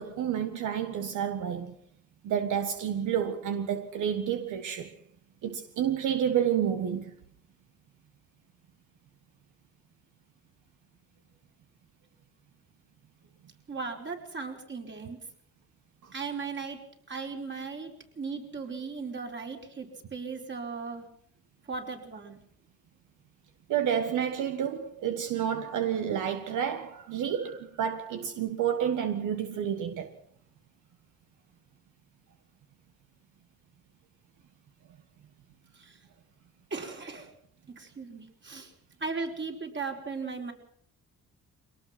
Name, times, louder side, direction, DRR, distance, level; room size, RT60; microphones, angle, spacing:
voice 1, 0.0-1.7 2.2-4.9 5.4-7.1 16.0-16.1 23.7-30.1, right 9 dB, 80° right, 1.7 m, -30 dB
voice 2, 13.7-15.2 16.1-16.8 17.1-21.1 21.7-22.4 35.8-36.0 36.7-37.3 37.7-38.7 39.0-40.5, right 4 dB, 40° right, 5.2 m, -37 dB
23.0 x 18.5 x 6.1 m
cardioid pair, 90°, 30 cm